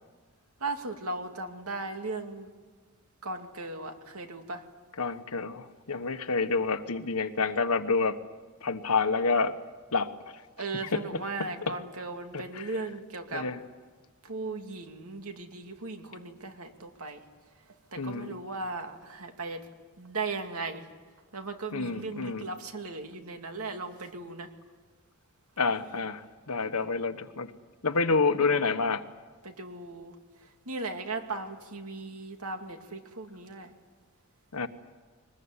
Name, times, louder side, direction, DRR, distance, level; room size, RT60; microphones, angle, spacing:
voice 1, 0.6-2.5 3.2-4.7 10.6-13.5 14.2-17.2 17.5-19.7 20.0-20.9 21.3-24.5 29.4-33.7, right 3 dB, 80° right, 5 dB, 2.4 m, -37 dB
voice 2, 5.0-8.2 8.6-9.5 9.9-10.1 10.9-11.0 13.3-13.6 18.0-18.4 21.7-22.4 25.6-27.5 27.8-29.0 34.5-34.7, left 4 dB, 85° left, 9 dB, 1.3 m, -28 dB
22.5 x 20.5 x 9.7 m, 1.4 s
head